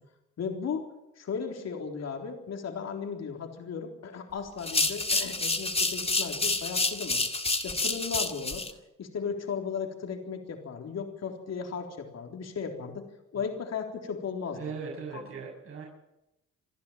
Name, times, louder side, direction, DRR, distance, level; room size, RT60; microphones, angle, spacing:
voice 1, 0.4-0.9 1.2-7.2 7.6-8.6 9.0-13.1 13.3-14.6 15.1-15.3, left 6 dB, 60° left, 3 dB, 3.8 m, -36 dB
sound 1, 4.6-8.7, left 2 dB, 20° left, 2.1 m, -28 dB
voice 2, 14.5-15.8, right 5 dB, 45° right, -2 dB, 7.0 m, -39 dB
28.0 x 10.5 x 9.1 m, 0.91 s
cardioid pair, 90°, 30 cm